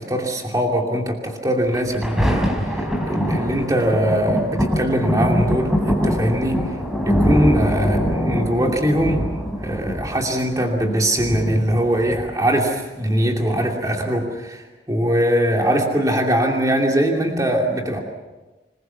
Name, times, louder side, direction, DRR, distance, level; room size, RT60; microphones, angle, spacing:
voice 1, 0.0-6.7 7.0-9.3 9.6-18.0, equal, 20° right, 1 dB, 2.7 m, -21 dB
Thunder, 1.7-12.7 13.3-13.4, equal, ahead, 3.8 m, -23 dB
26.5 x 21.0 x 7.1 m, 1.2 s
head